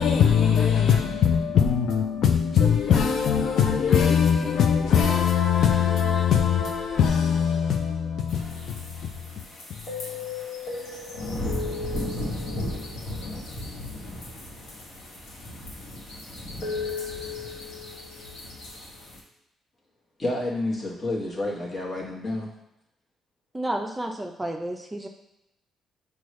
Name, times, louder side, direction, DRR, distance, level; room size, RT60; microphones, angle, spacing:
voice 1, 0.0-9.8, left 7 dB, 70° left, 0.4 m, -22 dB
sound 1, 8.3-19.2, left 2 dB, 85° left, 1.1 m, -34 dB
voice 2, 20.2-22.5, left 2 dB, 35° left, 1.2 m, -29 dB
voice 3, 23.5-25.1, right 1 dB, 15° right, 0.4 m, -31 dB
6.1 x 2.3 x 3.1 m
cardioid pair, 90°, 0 cm